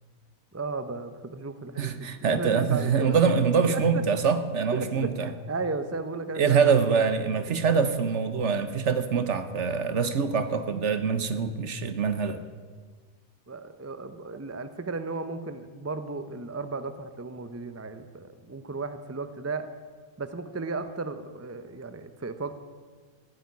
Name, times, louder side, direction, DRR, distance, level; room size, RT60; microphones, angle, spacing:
voice 1, 0.5-3.2 3.7-4.0 4.7-6.8 7.2-7.3 13.5-19.7 20.2-22.6, right 3 dB, 20° right, 10 dB, 0.5 m, -34 dB
voice 2, 1.8-5.3 6.4-12.4, right 6 dB, 60° right, 10 dB, 1.2 m, -24 dB
15.0 x 8.5 x 9.5 m, 1.5 s
omnidirectional pair, 1.5 m